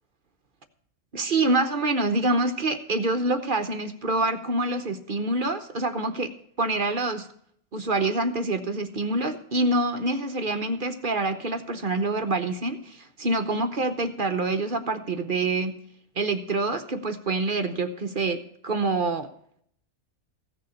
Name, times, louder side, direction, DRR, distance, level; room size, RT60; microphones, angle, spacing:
voice 1, 1.1-6.3 6.6-7.3 7.7-15.7 16.2-19.3, right 2 dB, 40° right, 7 dB, 0.9 m, -26 dB
15.5 x 6.7 x 6.9 m, 0.66 s
omnidirectional pair, 1.5 m